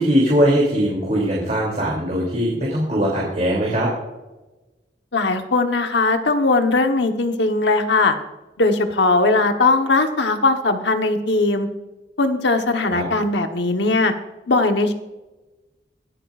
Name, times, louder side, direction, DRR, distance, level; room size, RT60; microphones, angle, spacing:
voice 1, 0.0-3.9 12.9-13.0, equal, 40° right, -4 dB, 3.0 m, -20 dB
voice 2, 5.1-8.2 8.6-11.7 12.2-14.1 14.5-14.9, left 3 dB, 85° left, 6 dB, 1.1 m, -19 dB
23.0 x 8.9 x 2.5 m, 1.1 s
head